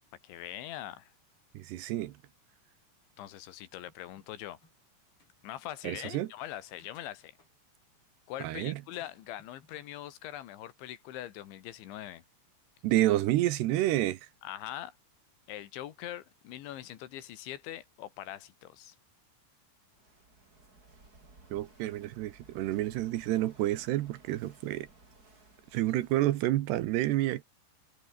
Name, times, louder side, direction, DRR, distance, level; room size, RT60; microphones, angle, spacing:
voice 1, 0.2-1.1 3.2-4.6 5.4-7.3 8.3-12.2 14.4-15.0 15.5-19.0, left 13 dB, 85° left, 4.2 m, -42 dB
voice 2, 1.5-2.2 5.8-6.3 8.4-8.8 12.8-14.2 21.5-24.9 25.7-27.4, right 15 dB, 75° right, 2.9 m, -29 dB
sound 1, 3.9-4.9 5.2-5.3 6.4-7.5 8.9-9.9, left 3 dB, 30° left, 7.2 m, -64 dB
Walk footsteps / Wind / Waves surf, 19.9-26.5, right 3 dB, 20° right, 4.7 m, -58 dB
omnidirectional pair, 5.2 m